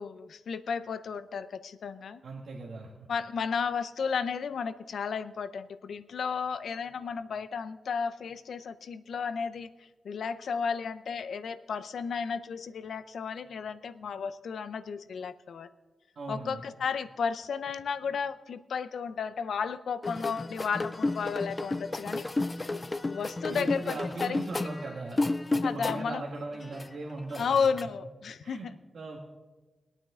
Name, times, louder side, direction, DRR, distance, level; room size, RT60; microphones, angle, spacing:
voice 1, 0.0-2.2 3.1-15.7 16.3-22.2 22.7-24.7 25.6-26.2 27.4-28.8, left 6 dB, 80° left, 14 dB, 0.6 m, -33 dB
voice 2, 2.2-3.1 16.1-16.6 23.4-25.2 25.5-27.7 28.4-28.7 28.9-29.2, right 3 dB, 65° right, -1 dB, 1.6 m, -39 dB
sound 1, 20.0-26.2 26.5-27.8, left 2 dB, 20° left, 0.3 m, -32 dB
22.0 x 9.0 x 3.7 m, 1.2 s
wide cardioid pair, 160°, 0 cm